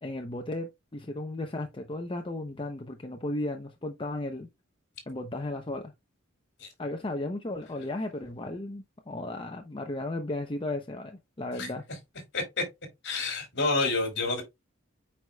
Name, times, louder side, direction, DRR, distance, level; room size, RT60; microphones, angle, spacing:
voice 1, 0.0-4.5 5.1-5.9 6.8-11.8, left 2 dB, 25° left, 0.7 m, -35 dB
voice 2, 12.3-12.6 13.0-14.4, left 3 dB, 55° left, 3.0 m, -28 dB
8.6 x 4.8 x 2.3 m
head